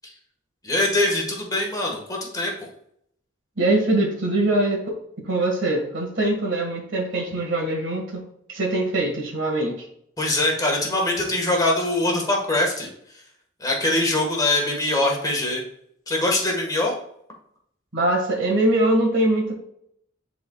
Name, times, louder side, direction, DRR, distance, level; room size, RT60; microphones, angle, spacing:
voice 1, 0.6-2.7 10.2-13.2 13.6-15.6 16.1-16.9, left 2 dB, 20° left, -1 dB, 1.4 m, -23 dB
voice 2, 3.6-4.9 5.3-8.2 8.5-9.7 17.9-19.6, right 1 dB, 70° right, 1 dB, 1.6 m, -22 dB
10.5 x 4.0 x 2.3 m, 0.71 s
head